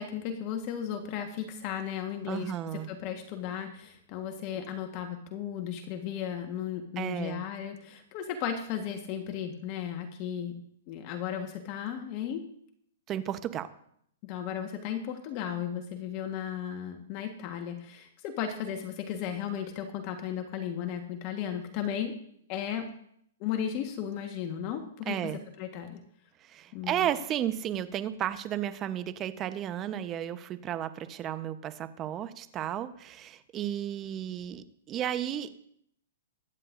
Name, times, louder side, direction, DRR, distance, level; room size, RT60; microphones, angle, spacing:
voice 1, 0.0-10.5 10.9-12.4 14.2-22.2 22.5-22.9 23.4-25.3 25.6-26.0 26.7-27.0, left 9 dB, 40° left, 5 dB, 1.4 m, -35 dB
voice 2, 2.3-2.9 7.0-7.4 13.1-13.7 25.1-25.4 26.4-35.5, right 11 dB, 25° right, 11 dB, 1.0 m, -33 dB
22.5 x 9.9 x 2.6 m, 0.69 s
hypercardioid pair, 130°, 0 cm